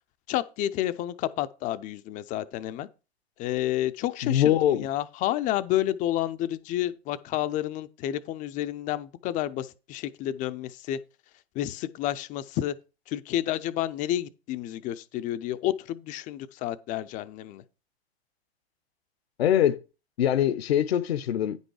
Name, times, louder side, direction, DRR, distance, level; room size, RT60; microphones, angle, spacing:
voice 1, 0.3-2.9 3.4-11.0 11.5-12.8 13.1-17.6, left 13 dB, 25° left, 0.5 m, -30 dB
voice 2, 4.2-4.9 19.4-19.8 20.2-21.6, left 11 dB, 70° left, 0.8 m, -23 dB
9.7 x 5.4 x 4.7 m
hypercardioid pair, 115°, 33 cm